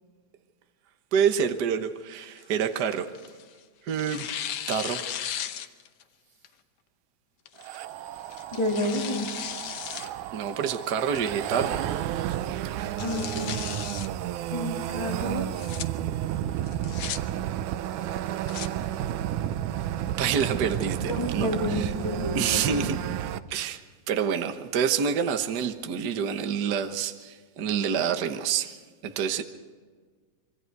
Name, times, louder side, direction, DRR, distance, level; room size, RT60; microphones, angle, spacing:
voice 1, 1.1-3.1 3.9-4.3 4.7-5.1 10.3-11.8 20.2-21.9 22.3-23.0 23.5-23.8 24.1-28.7 29.0-29.4, right 7 dB, 65° right, 1.0 m, -27 dB
Tearing, 2.2-3.5 4.0-6.0 6.4-6.5 7.5-7.8 8.3-10.1 10.5-10.6 11.1-11.6 11.9-12.0 12.3-12.4 12.8-14.1 15.4-15.8 16.6-17.2 18.2-18.7, left 10 dB, 65° left, 1.5 m, -36 dB
sound 1, 7.6-23.4, right 11 dB, 85° right, 2.2 m, -32 dB
voice 2, 8.5-9.3 13.0-13.6 14.5-15.5 21.0-22.9, left 1 dB, 10° left, 1.6 m, -30 dB
26.0 x 24.0 x 4.7 m
omnidirectional pair, 3.4 m